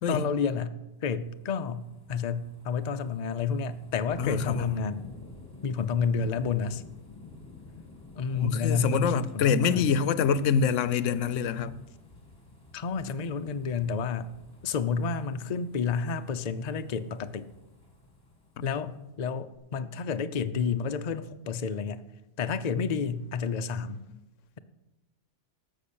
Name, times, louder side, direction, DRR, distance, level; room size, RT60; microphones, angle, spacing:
voice 1, 0.1-5.1 5.6-6.8 8.1-9.9 12.7-14.3 14.6-17.5 18.6-18.9 19.2-22.0 22.4-24.0, left 5 dB, 45° left, 0.6 m, -30 dB
sound 1, 1.0-19.1 19.5-19.6, left 2 dB, 15° left, 2.3 m, -50 dB
voice 2, 4.2-4.7 8.3-11.8 18.6-18.8, left 6 dB, 85° left, 1.0 m, -26 dB
13.5 x 5.9 x 8.6 m
omnidirectional pair, 1.3 m